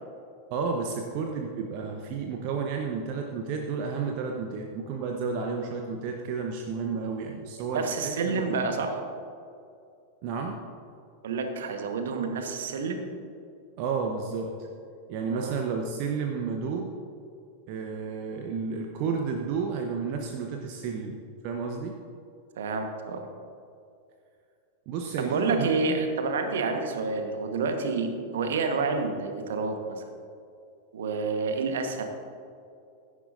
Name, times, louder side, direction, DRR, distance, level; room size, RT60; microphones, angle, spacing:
voice 1, 0.5-8.6 10.2-10.6 13.8-14.7 15.1-16.9 17.7-21.2 21.4-22.0 24.9-25.7, right 5 dB, 45° right, 2 dB, 0.9 m, -31 dB
voice 2, 7.7-9.0 11.2-13.0 15.3-15.5 22.6-23.3 25.2-30.0 30.9-32.0, right 4 dB, 60° right, 5 dB, 1.3 m, -29 dB
16.0 x 11.0 x 2.6 m, 2.5 s
figure-of-eight pair, 90°, 0 cm